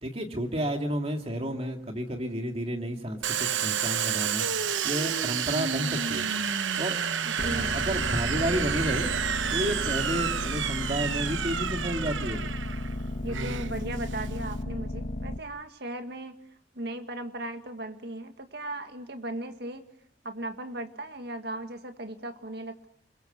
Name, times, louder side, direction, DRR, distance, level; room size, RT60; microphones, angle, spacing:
voice 1, 0.0-6.3 6.8-7.0 7.5-9.1 9.5-12.4, equal, 35° right, 3 dB, 2.6 m, -31 dB
Domestic sounds home sounds, 3.2-14.6, right 8 dB, 90° right, 0.9 m, -30 dB
voice 2, 7.2-7.8 13.2-16.4 16.7-19.8 20.2-22.9, right 1 dB, 60° right, 7 dB, 1.9 m, -37 dB
sound 1, 7.4-15.4, left 1 dB, 50° left, 1.2 m, -34 dB
29.5 x 22.5 x 6.8 m, 0.72 s
head